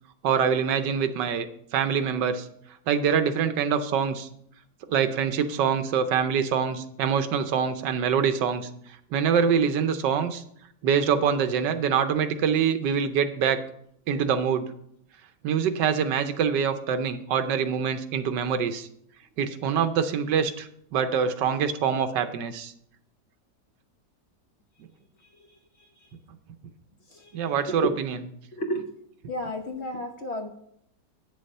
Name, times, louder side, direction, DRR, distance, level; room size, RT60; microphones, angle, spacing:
voice 1, 0.2-2.5 2.9-4.3 4.9-8.7 9.1-10.4 10.8-13.6 14.1-14.7 15.4-18.9 19.4-22.7 27.3-28.3, right 7 dB, 90° right, 9 dB, 1.4 m, -25 dB
voice 2, 27.1-27.9 28.5-28.8 29.3-30.5, equal, 45° left, 5 dB, 1.1 m, -32 dB
9.1 x 6.9 x 5.4 m, 0.70 s
omnidirectional pair, 1.8 m